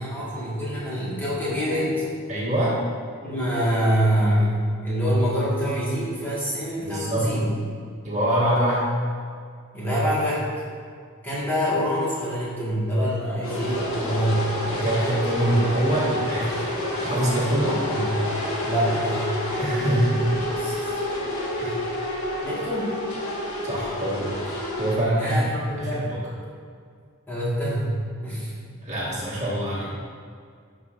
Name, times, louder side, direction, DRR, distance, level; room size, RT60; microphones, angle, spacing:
voice 1, 0.0-2.0 3.2-7.5 9.7-10.4 11.2-14.4 17.8-18.1 18.6-19.3 20.4-21.0 22.4-23.0 25.2-26.1 27.3-27.9 28.2-28.5, equal, 10° left, -9 dB, 1.5 m, -25 dB
voice 2, 2.3-2.7 6.9-7.3 8.0-8.8 14.1-14.4 14.7-17.9 19.6-20.3 21.6-21.8 23.6-24.3 24.8-25.4 25.8-26.2 28.8-30.0, right 1 dB, 35° right, -7 dB, 1.6 m, -25 dB
sound 1, 13.4-25.0, left 1 dB, 80° left, 1.3 m, -28 dB
11.5 x 4.9 x 2.5 m, 2.1 s
head